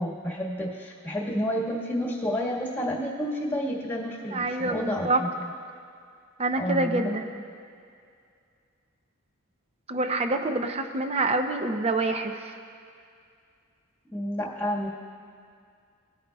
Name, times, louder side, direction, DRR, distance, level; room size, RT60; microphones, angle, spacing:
voice 1, 0.0-5.5 6.6-7.1 14.1-14.9, equal, 10° left, -3 dB, 1.5 m, -30 dB
voice 2, 4.3-5.2 6.4-7.2 9.9-12.5, right 2 dB, 30° right, 6 dB, 0.6 m, -26 dB
18.0 x 9.1 x 2.3 m, 2.3 s
head